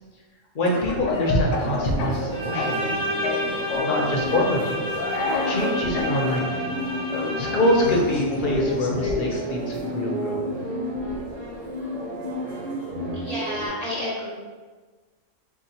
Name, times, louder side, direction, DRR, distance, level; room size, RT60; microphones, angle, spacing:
voice 1, 0.5-3.1 3.8-4.8 5.4-6.7 7.4-10.4, left 1 dB, 50° left, -1 dB, 0.7 m, -25 dB
Speech / Cough, 0.7-2.9 3.2-4.0 4.9-6.2 7.1-9.4, left 4 dB, 80° left, 1.0 m, -29 dB
sound 1, 1.5-13.7, equal, 70° right, 1.3 m, -31 dB
Bowed string instrument, 2.3-8.1, left 1 dB, 5° right, 0.8 m, -30 dB
voice 2, 13.2-14.3, left 1 dB, 30° right, -7 dB, 1.2 m, -30 dB
4.5 x 2.7 x 2.8 m, 1.4 s
omnidirectional pair, 1.3 m